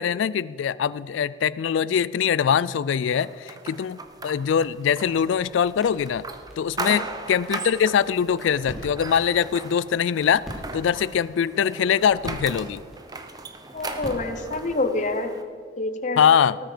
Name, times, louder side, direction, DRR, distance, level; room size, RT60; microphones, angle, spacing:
voice 1, 0.0-6.2 6.6-10.4 10.7-12.8 16.2-16.6, left 8 dB, 80° left, 18 dB, 0.3 m, -22 dB
sound 1, 3.2-15.4, right 3 dB, 20° right, 0.8 m, -38 dB
sound 2, 4.0-14.9, equal, ahead, 2.6 m, -44 dB
voice 2, 13.7-15.4 15.8-16.2, left 2 dB, 40° left, 8 dB, 0.9 m, -27 dB
18.5 x 9.1 x 5.1 m, 2.1 s
head